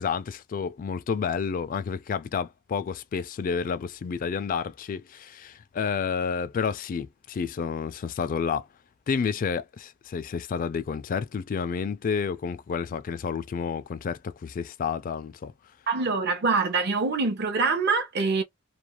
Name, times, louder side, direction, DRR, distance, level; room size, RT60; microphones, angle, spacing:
voice 1, 0.0-8.7 9.1-15.5, left 6 dB, 40° left, 0.3 m, -30 dB
voice 2, 15.9-18.4, right 4 dB, 50° right, 0.6 m, -24 dB
2.3 x 2.2 x 3.0 m
head